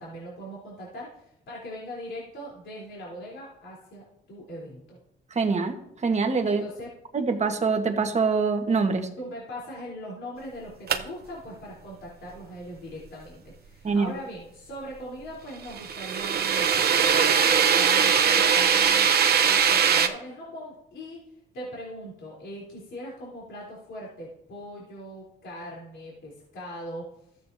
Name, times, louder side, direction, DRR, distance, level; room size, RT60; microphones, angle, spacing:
voice 1, 0.0-5.0 6.4-6.9 9.2-19.1 19.4-21.2 21.5-27.1, equal, 70° left, -5 dB, 3.6 m, -40 dB
voice 2, 5.3-6.6 7.1-9.1 13.8-14.1, right 4 dB, 35° right, 5 dB, 1.4 m, -24 dB
sound 1, 10.9-11.0 15.7-20.1, right 7 dB, 55° right, 0.8 m, -21 dB
14.0 x 8.2 x 2.7 m, 0.78 s
cardioid pair, 90°, 20 cm